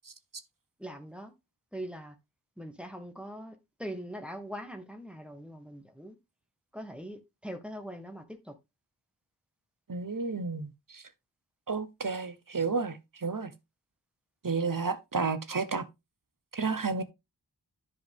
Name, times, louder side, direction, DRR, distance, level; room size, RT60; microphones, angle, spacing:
voice 1, 0.8-1.3 1.7-2.1 2.6-6.2 6.7-8.5, equal, 5° right, 1.6 m, -42 dB
voice 2, 9.9-11.0 11.7-13.5 14.4-15.8 16.5-17.0, right 4 dB, 50° right, 1.2 m, -31 dB
11.0 x 4.9 x 3.6 m
wide cardioid pair, 45°, 41 cm